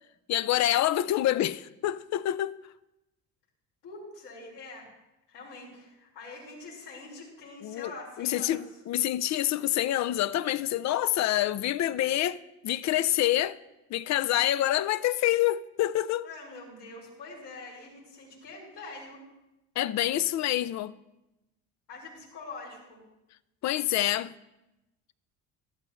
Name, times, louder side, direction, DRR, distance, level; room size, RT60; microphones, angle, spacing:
voice 1, 0.3-2.6 7.6-7.9 8.2-13.6 13.9-16.3 19.8-20.9 23.6-24.3, left 13 dB, 50° left, 0.5 m, -27 dB
voice 2, 3.8-4.9 5.3-8.6 16.2-19.2 21.9-23.0, left 3 dB, 80° left, 5.1 m, -44 dB
13.5 x 12.0 x 3.1 m
supercardioid pair, 95°, 35 cm